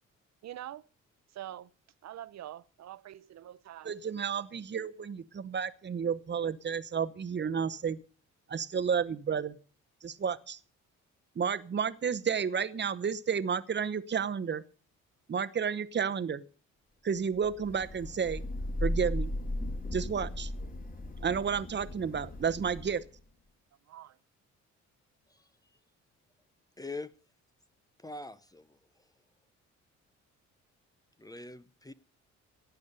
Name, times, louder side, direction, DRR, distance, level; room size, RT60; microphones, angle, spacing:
voice 1, 0.4-0.8 1.3-1.7 2.0-3.9 23.9-24.2, right 12 dB, 60° right, 0.8 m, -44 dB
voice 2, 3.8-8.0 8.5-9.6 10.0-10.6 11.3-14.6 15.3-16.4 17.0-18.4 18.8-19.3 19.9-20.5 21.2-23.0, right 7 dB, 35° right, 1.0 m, -31 dB
Thunder / Rain, 17.4-23.2, left 1 dB, 30° left, 2.9 m, -36 dB
voice 3, 26.8-27.1 28.0-28.8 31.2-31.9, left 2 dB, 10° left, 0.7 m, -43 dB
17.0 x 7.2 x 6.7 m
cardioid pair, 90°, 30 cm